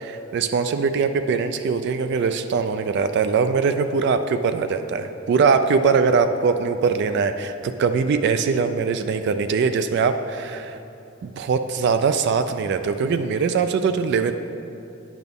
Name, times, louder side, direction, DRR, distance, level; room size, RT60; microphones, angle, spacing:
voice 1, 0.0-10.8 11.2-14.3, right 5 dB, 55° right, 9 dB, 0.3 m, -22 dB
9.4 x 6.0 x 3.5 m, 2.8 s
head